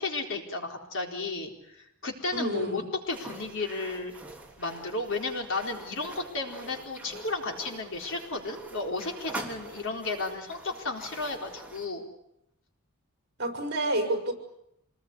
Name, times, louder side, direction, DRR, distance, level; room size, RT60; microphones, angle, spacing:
voice 1, 0.0-2.8 3.1-4.2 4.6-12.1, left 3 dB, 60° left, 3 dB, 4.3 m, -33 dB
voice 2, 2.3-2.9 13.4-14.3, right 1 dB, 50° right, 5 dB, 5.7 m, -29 dB
sound 1, 3.0-11.9, right 2 dB, 5° right, 3.5 m, -44 dB
27.0 x 20.5 x 9.7 m, 0.81 s
head